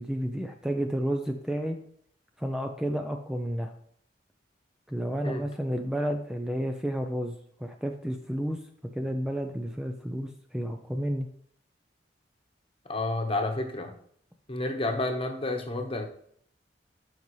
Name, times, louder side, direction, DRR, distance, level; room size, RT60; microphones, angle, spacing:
voice 1, 0.0-1.8 2.4-3.7 4.9-7.3 7.6-8.6 8.9-11.3, equal, 5° right, 4 dB, 0.5 m, -31 dB
voice 2, 12.9-13.9 14.5-16.1, left 2 dB, 30° left, 4 dB, 1.1 m, -30 dB
12.5 x 5.3 x 3.2 m, 0.65 s
head